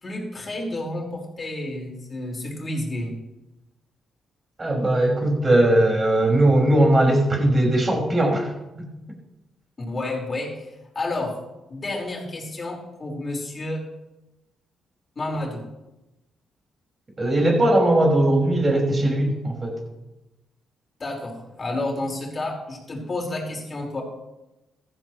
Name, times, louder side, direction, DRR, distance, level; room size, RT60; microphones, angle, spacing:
voice 1, 0.0-3.2 9.8-10.7 10.9-11.3 11.7-13.8 15.1-15.6 21.0-24.0, left 2 dB, 40° left, 0 dB, 4.7 m, -30 dB
voice 2, 4.6-8.5 17.2-19.8, right 1 dB, 30° right, 0 dB, 5.5 m, -19 dB
15.0 x 13.5 x 3.2 m, 0.98 s
hypercardioid pair, 45°, 0 cm